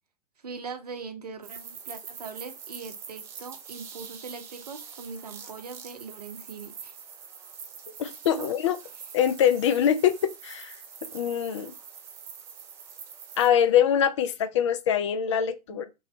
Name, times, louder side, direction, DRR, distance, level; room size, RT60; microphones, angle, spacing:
voice 1, 0.4-6.9 8.4-8.5 15.7-15.9, right 5 dB, 70° right, 0.7 m, -41 dB
sound 1, 1.4-13.5, right 7 dB, 15° right, 0.3 m, -44 dB
voice 2, 8.0-8.8 9.1-10.7 11.1-11.7 13.4-15.9, left 9 dB, 45° left, 0.4 m, -23 dB
3.1 x 2.6 x 2.9 m
figure-of-eight pair, 110°, 20 cm